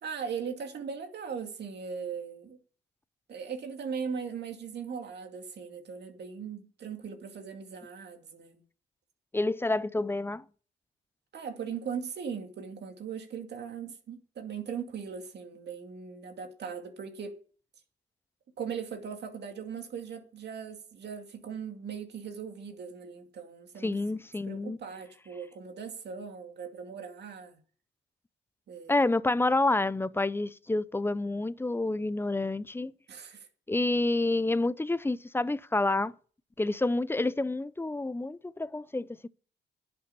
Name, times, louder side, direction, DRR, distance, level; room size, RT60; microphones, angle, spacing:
voice 1, 0.0-2.6 3.3-8.6 11.3-17.4 18.6-24.0 24.4-27.6 28.7-29.0 33.1-33.5, right 6 dB, 60° right, 2.4 m, -39 dB
voice 2, 9.3-10.4 23.8-24.8 28.9-32.9 33.7-36.1 36.6-39.3, left 2 dB, 10° left, 0.5 m, -28 dB
11.0 x 7.0 x 8.3 m
cardioid pair, 90°, 20 cm